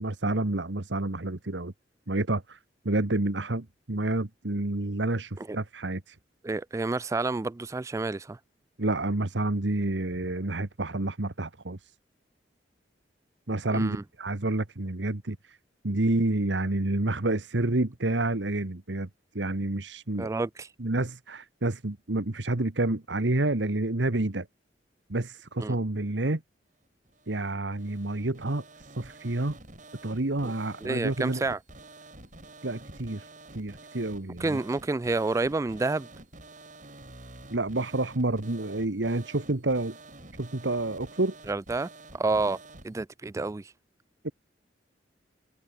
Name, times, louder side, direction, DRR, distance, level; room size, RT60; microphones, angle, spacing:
voice 1, 0.0-1.7 2.1-2.6 2.8-6.2 8.8-11.9 13.5-15.6 15.8-19.1 19.3-20.3 20.8-24.5 25.1-26.4 27.3-29.6 30.0-31.4 32.6-33.3 33.5-34.6 37.5-40.0 40.4-41.3 44.2-44.3, right 2 dB, 80° right, 1.5 m, -29 dB
voice 2, 6.4-8.4 13.7-14.0 20.2-20.7 25.6-25.8 30.4-30.5 30.8-31.6 34.4-36.1 41.5-41.9 42.1-42.6 42.8-43.6, right 3 dB, 15° right, 0.3 m, -29 dB
sound 1, 27.0-42.9, right 2 dB, 45° right, 6.0 m, -49 dB
head